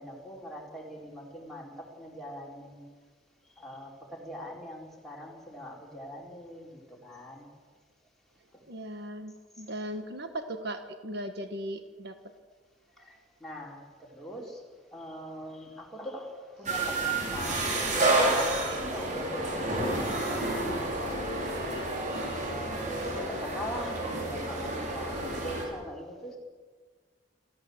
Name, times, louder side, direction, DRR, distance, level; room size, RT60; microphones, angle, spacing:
voice 1, 0.0-2.8 3.6-7.5 13.0-14.6 14.9-21.2 22.1-26.4, equal, ahead, -3 dB, 4.3 m, -41 dB
voice 2, 8.7-12.3, right 1 dB, 60° right, 7 dB, 1.4 m, -38 dB
sound 1, 16.7-25.7, right 2 dB, 45° right, 5.5 m, -30 dB
28.0 x 14.5 x 7.9 m, 1.5 s
head